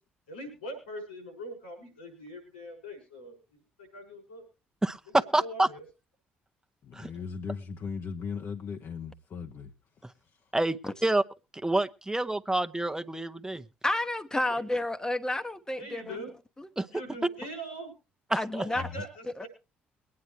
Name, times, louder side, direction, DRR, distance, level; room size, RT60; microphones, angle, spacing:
voice 1, 0.3-4.4 5.2-5.8 14.4-14.6 15.8-16.3 16.9-17.9 18.5-19.5, equal, 90° left, 6.2 m, -42 dB
voice 2, 4.8-5.7 6.9-7.1 10.0-10.1 10.5-10.8 11.0-11.2 11.6-13.6 16.8-16.9 18.3-18.6, right 2 dB, 10° right, 0.8 m, -27 dB
voice 3, 6.8-9.7 10.2-10.5 18.7-19.0, left 5 dB, 50° left, 1.0 m, -38 dB
voice 4, 13.8-16.2 16.6-16.7 18.3-18.9 19.4-19.5, left 1 dB, 10° left, 1.0 m, -31 dB
23.0 x 9.6 x 3.1 m
hypercardioid pair, 50°, 5 cm